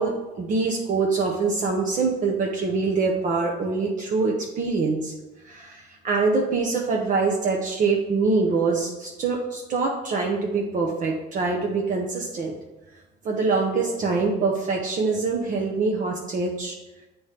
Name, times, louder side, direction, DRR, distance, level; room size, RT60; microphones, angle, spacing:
voice 1, 0.0-5.1 5.4-12.5 13.2-16.8, right 4 dB, 50° right, 0 dB, 0.8 m, -24 dB
8.0 x 4.3 x 3.4 m, 1.0 s
cardioid pair, 110°, 17 cm